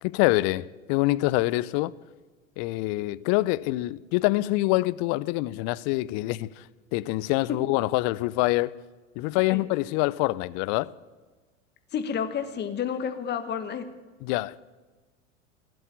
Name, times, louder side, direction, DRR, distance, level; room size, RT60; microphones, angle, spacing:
voice 1, 0.0-1.9 2.6-6.6 6.9-8.7 9.2-10.9 14.2-14.6, left 19 dB, 45° left, 0.6 m, -25 dB
voice 2, 11.9-13.9, left 7 dB, 25° left, 1.2 m, -30 dB
16.0 x 7.8 x 9.7 m
hypercardioid pair, 85°, 39 cm